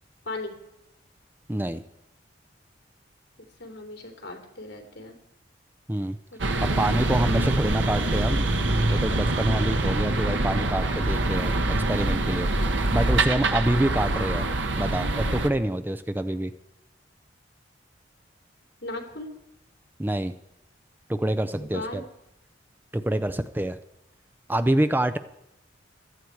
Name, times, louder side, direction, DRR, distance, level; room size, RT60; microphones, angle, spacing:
voice 1, 0.2-0.6 3.4-5.2 6.3-7.2 18.8-19.4 21.6-22.0, left 2 dB, 75° left, 3 dB, 3.3 m, -38 dB
voice 2, 1.5-1.8 5.9-6.2 6.6-8.5 8.9-11.5 11.9-12.5 12.9-14.4 14.8-16.5 20.0-20.3 21.1-22.0 22.9-23.8 24.5-25.2, right 1 dB, 10° right, 10 dB, 0.5 m, -26 dB
sound 1, 6.4-15.5, right 2 dB, 85° right, 1.3 m, -25 dB
16.5 x 13.0 x 4.7 m, 0.86 s
head